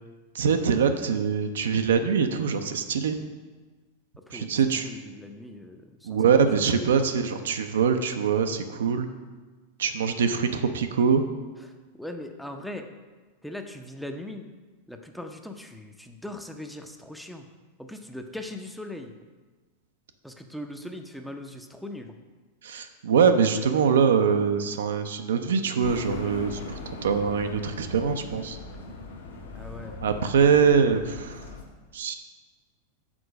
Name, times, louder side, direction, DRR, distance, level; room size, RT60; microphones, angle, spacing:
voice 1, 0.3-3.2 4.3-4.9 6.0-9.1 9.8-11.2 22.6-28.6 30.0-31.4 31.9-32.1, right 6 dB, 65° right, 7 dB, 0.5 m, -23 dB
voice 2, 4.3-6.4 6.8-7.1 11.6-12.9 13.4-14.5 14.9-17.5 17.8-19.1 20.2-22.2 29.5-30.0, left 1 dB, ahead, 5 dB, 0.6 m, -40 dB
sound 1, 25.8-31.6, left 2 dB, 65° left, 1.3 m, -39 dB
6.1 x 4.6 x 6.3 m, 1.3 s
figure-of-eight pair, 90°, 0 cm